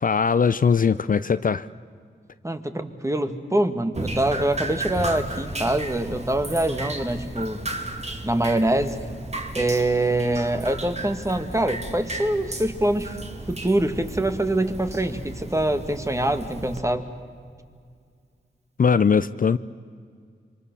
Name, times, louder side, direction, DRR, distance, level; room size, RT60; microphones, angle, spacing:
voice 1, 0.0-1.7 18.8-19.6, left 6 dB, 45° left, 14 dB, 0.5 m, -20 dB
voice 2, 2.4-7.7 8.2-9.0 9.5-13.2 13.5-17.1, right 1 dB, 15° right, 8 dB, 1.9 m, -24 dB
Drip, 3.9-16.8, right 2 dB, 35° right, 2.5 m, -34 dB
26.5 x 24.0 x 6.9 m, 2.1 s
cardioid pair, 65°, 19 cm